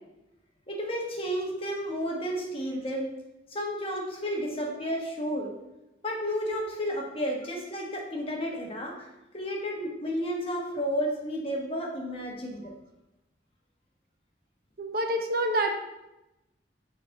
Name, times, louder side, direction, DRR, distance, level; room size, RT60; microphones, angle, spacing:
voice 1, 0.7-3.1 3.5-5.5 6.0-9.1 9.3-12.7, equal, 30° left, -1 dB, 1.3 m, -32 dB
voice 2, 14.8-15.7, right 1 dB, 55° right, 3 dB, 0.8 m, -27 dB
7.4 x 3.9 x 4.6 m, 0.93 s
head